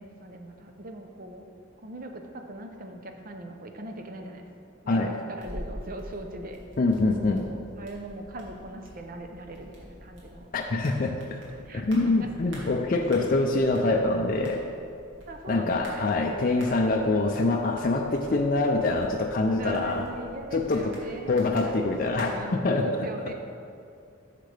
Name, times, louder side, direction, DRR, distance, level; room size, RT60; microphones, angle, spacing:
voice 1, 0.0-1.4 1.8-4.4 4.8-6.6 7.2-10.5 11.6-12.3 15.3-16.1 19.6-21.6 22.3-23.3, right 1 dB, 45° right, 4 dB, 0.6 m, -40 dB
voice 2, 4.9-5.2 6.8-7.4 10.5-11.4 11.7-14.6 15.5-20.0 20.5-20.9 21.3-22.9, left 2 dB, 45° left, 2 dB, 0.4 m, -25 dB
sound 1, 5.4-22.3, equal, 65° right, 2.1 m, -47 dB
10.0 x 6.6 x 3.3 m, 2.4 s
head